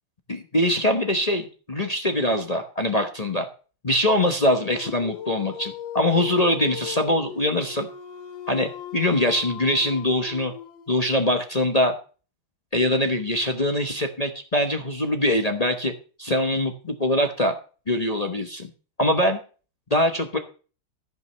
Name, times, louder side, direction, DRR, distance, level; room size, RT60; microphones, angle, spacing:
voice 1, 0.3-3.5 3.8-7.9 8.5-10.5 10.9-11.9 12.7-15.9 16.2-17.5 17.9-18.7 19.0-19.4 19.9-20.4, left 1 dB, 30° left, 4 dB, 0.7 m, -23 dB
Dog, 4.7-11.1, left 7 dB, 70° left, 1.7 m, -38 dB
14.0 x 5.4 x 6.7 m, 0.37 s
omnidirectional pair, 2.2 m